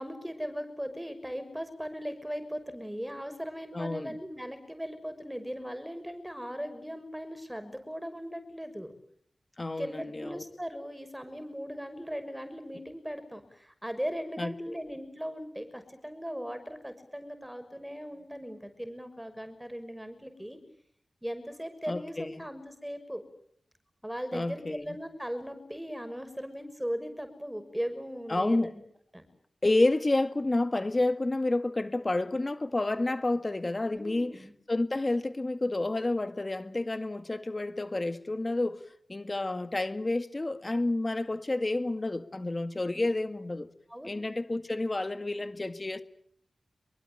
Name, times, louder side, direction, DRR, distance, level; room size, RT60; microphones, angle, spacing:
voice 1, 0.0-8.9 9.8-20.6 21.2-23.2 24.0-28.8 29.1-29.2 33.9-34.5 42.9-43.1 43.9-44.1, equal, 5° right, 5.9 m, -38 dB
voice 2, 3.7-4.2 9.6-10.4 14.4-14.8 21.9-22.3 24.3-25.0 28.3-28.7 29.6-34.3 34.7-38.8 39.1-43.7 44.0-46.0, left 2 dB, 35° left, 1.9 m, -30 dB
25.5 x 23.0 x 8.9 m
cardioid pair, 60°, 0 cm